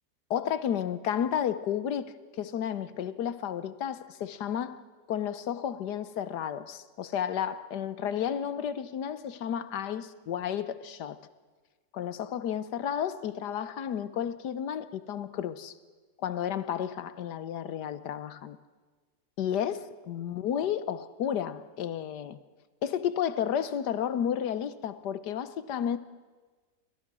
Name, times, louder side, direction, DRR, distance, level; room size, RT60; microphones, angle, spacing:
voice 1, 0.3-4.8 5.1-11.2 11.9-15.7 16.2-18.6 19.4-22.4 22.8-26.0, left 9 dB, 75° left, 1.5 m, -32 dB
29.0 x 22.5 x 6.1 m
omnidirectional pair, 1.8 m